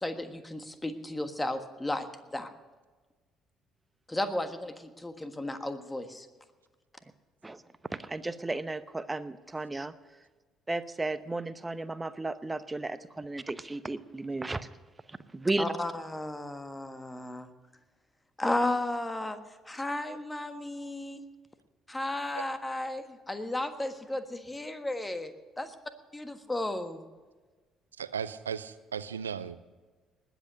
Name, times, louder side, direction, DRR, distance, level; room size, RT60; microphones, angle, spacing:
voice 1, 0.0-2.1 2.3-2.5 4.1-6.3 15.6-17.5 18.4-19.4 19.6-21.2 21.9-25.7 26.1-27.0, left 1 dB, 15° left, 9 dB, 1.5 m, -34 dB
voice 2, 7.9-9.9 10.7-14.7 15.1-15.7, right 2 dB, 20° right, 14 dB, 0.8 m, -34 dB
voice 3, 28.0-29.6, right 7 dB, 85° right, 16 dB, 0.4 m, -36 dB
20.0 x 8.2 x 6.4 m, 1.3 s
figure-of-eight pair, 50°, 0 cm